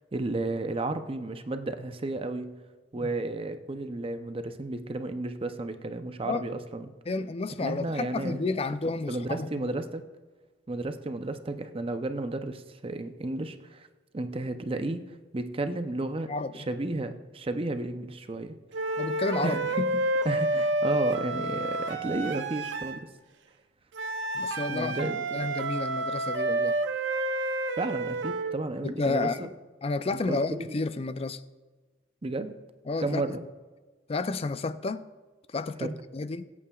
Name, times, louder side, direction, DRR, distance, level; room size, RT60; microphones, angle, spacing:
voice 1, 0.1-2.5 2.9-6.9 7.6-8.4 9.1-10.0 10.7-13.9 14.1-15.0 15.3-16.3 16.6-18.6 19.4-19.6 20.2-23.1 24.7-25.2 27.8-29.5 30.1-30.7 32.2-32.6 33.0-33.4 35.8-36.0, right 2 dB, 30° right, 0.6 m, -32 dB
voice 2, 7.1-9.7 16.3-16.7 19.0-20.1 24.3-26.8 28.8-29.5 29.8-31.4 32.9-33.2 34.1-35.0 35.5-36.4, left 3 dB, 35° left, 0.4 m, -31 dB
sound 1, 18.7-23.0 23.9-28.6, right 2 dB, 90° right, 0.7 m, -29 dB
23.5 x 8.5 x 2.4 m
head